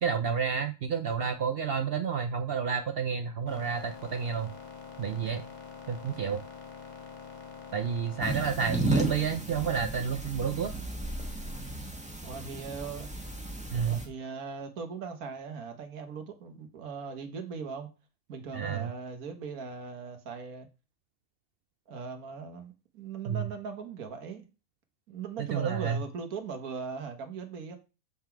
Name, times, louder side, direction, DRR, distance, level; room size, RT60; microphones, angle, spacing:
voice 1, 0.0-4.5 5.0-5.4 5.9-6.4 7.7-10.7 13.7-14.0 18.5-18.9 23.3-23.4 25.4-26.0, right 7 dB, 65° right, 0.6 m, -30 dB
sound 1, 3.5-8.5, left 5 dB, 35° left, 1.3 m, -45 dB
sound 2, 8.2-14.1, right 1 dB, 5° right, 1.2 m, -34 dB
voice 2, 12.2-13.1 13.7-17.9 18.3-20.7 21.9-24.4 25.1-27.8, right 5 dB, 80° right, 1.6 m, -39 dB
7.2 x 3.8 x 4.5 m
omnidirectional pair, 1.5 m